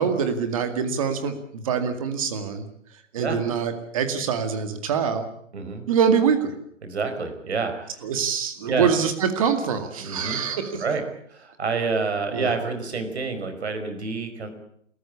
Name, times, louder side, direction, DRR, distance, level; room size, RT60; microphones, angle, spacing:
voice 1, 0.0-2.6 3.1-5.3 5.9-6.5 8.0-10.8 12.3-12.5, right 7 dB, 25° right, 8 dB, 2.2 m, -24 dB
voice 2, 5.5-5.9 6.8-8.0 8.7-8.9 10.0-10.4 10.8-11.0 11.3-14.5, right 4 dB, 60° right, 7 dB, 5.1 m, -28 dB
28.0 x 14.5 x 8.5 m, 0.68 s
hypercardioid pair, 175°, 37 cm